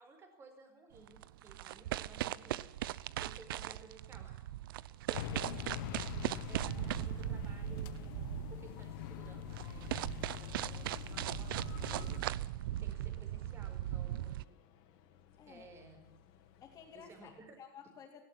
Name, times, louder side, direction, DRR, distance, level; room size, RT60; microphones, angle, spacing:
voice 1, 0.0-4.5 5.1-6.0 6.5-12.2 12.8-14.6 15.5-16.1 16.9-17.6, right 3 dB, 25° right, 6 dB, 4.8 m, -57 dB
sound 1, 1.0-14.4, right 14 dB, 85° right, 0.7 m, -39 dB
sound 2, 5.1-12.2, left 15 dB, 70° left, 1.3 m, -44 dB
sound 3, 5.6-17.4, left 9 dB, 50° left, 3.1 m, -64 dB
voice 2, 16.6-18.2, left 8 dB, 25° left, -3 dB, 3.5 m, -55 dB
18.5 x 16.5 x 8.7 m, 0.69 s
supercardioid pair, 145°, 11 cm